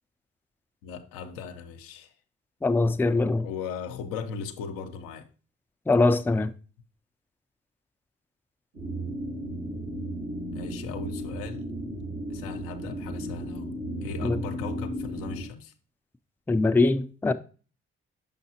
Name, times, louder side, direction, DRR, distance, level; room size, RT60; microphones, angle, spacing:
voice 1, 0.8-2.1 3.4-5.3 10.5-11.7 12.3-13.7 14.0-15.7, left 6 dB, 85° left, 0.7 m, -38 dB
voice 2, 2.6-3.5 5.9-6.5 14.2-14.4 16.5-17.3, left 3 dB, 5° left, 0.4 m, -22 dB
sound 1, 8.7-15.5, right 1 dB, 90° right, 1.6 m, -34 dB
6.6 x 5.4 x 2.8 m
hypercardioid pair, 45°, 32 cm